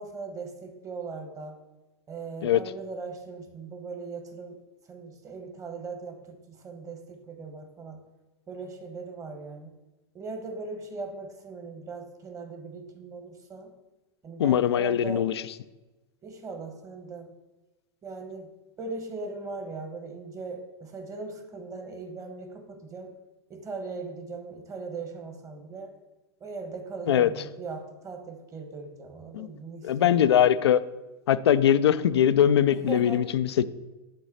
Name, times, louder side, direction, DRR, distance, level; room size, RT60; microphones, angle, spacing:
voice 1, 0.0-1.6 2.1-4.6 4.9-8.0 8.5-9.7 10.1-13.7 14.2-15.3 16.2-17.3 18.0-18.5 18.8-23.2 23.5-25.9 26.4-30.6 32.7-33.3, right 4 dB, 25° right, 6 dB, 1.2 m, -39 dB
voice 2, 14.4-15.4 27.1-27.3 29.3-29.5 29.8-30.8 31.3-33.6, left 10 dB, 75° left, 14 dB, 0.4 m, -21 dB
11.5 x 4.0 x 4.2 m, 1.1 s
hypercardioid pair, 100°, 14 cm